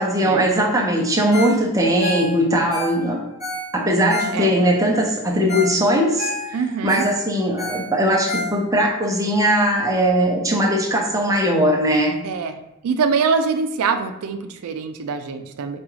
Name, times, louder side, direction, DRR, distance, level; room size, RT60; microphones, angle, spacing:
voice 1, 0.0-3.2 3.7-6.3 6.8-12.2, equal, 15° right, -1 dB, 0.6 m, -19 dB
Ringtone, 1.3-1.6 1.9-4.7 5.2-5.3 5.5-5.8 6.0-8.9 9.4-9.5, left 1 dB, 30° left, 1.1 m, -30 dB
voice 2, 6.5-7.1 12.2-15.8, right 5 dB, 85° right, 8 dB, 0.4 m, -24 dB
4.8 x 2.3 x 3.1 m, 0.88 s
head